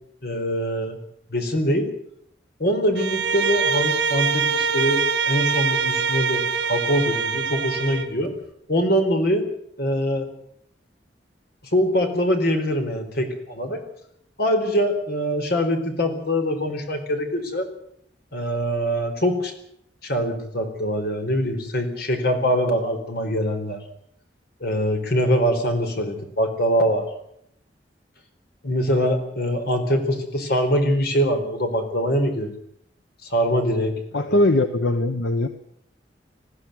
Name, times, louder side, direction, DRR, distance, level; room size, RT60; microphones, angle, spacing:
voice 1, 0.2-1.0 1.3-1.9 2.6-8.3 8.7-9.4 9.8-10.3 11.7-13.8 14.4-17.7 18.3-19.5 20.0-23.8 24.6-27.1 28.6-32.5 33.2-33.9 34.3-34.4, equal, 60° left, 5 dB, 4.5 m, -23 dB
Bowed string instrument, 2.9-8.1, right 5 dB, 70° right, 1.6 m, -24 dB
voice 2, 34.1-35.5, left 1 dB, 85° left, 8 dB, 1.2 m, -20 dB
20.5 x 15.0 x 9.4 m, 0.73 s
head